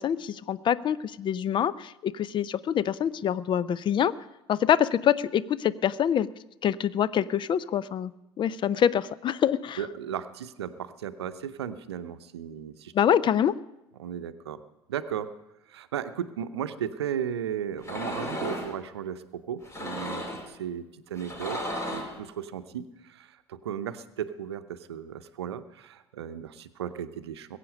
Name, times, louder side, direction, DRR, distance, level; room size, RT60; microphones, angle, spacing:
voice 1, 0.0-4.1 4.5-6.3 6.6-8.1 8.4-9.8 12.9-13.5, left 9 dB, 35° left, 18 dB, 0.5 m, -25 dB
voice 2, 9.8-12.9 14.0-14.6 14.9-15.3 15.7-21.6 21.9-27.6, right 9 dB, 75° right, 11 dB, 0.7 m, -35 dB
sound 1, 17.8-18.7 19.6-20.5 21.2-22.2, left 1 dB, 20° left, 2.8 m, -34 dB
21.0 x 8.3 x 5.3 m, 0.91 s
figure-of-eight pair, 60°, 14 cm